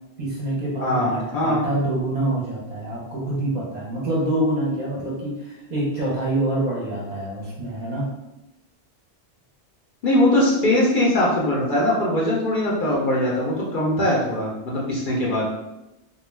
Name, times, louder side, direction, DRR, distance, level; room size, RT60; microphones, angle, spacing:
voice 1, 0.2-8.1, right 1 dB, 45° right, -5 dB, 0.7 m, -26 dB
voice 2, 0.8-1.6 10.0-15.4, left 1 dB, 55° left, -5 dB, 0.6 m, -21 dB
2.2 x 2.2 x 3.1 m, 0.95 s
omnidirectional pair, 1.2 m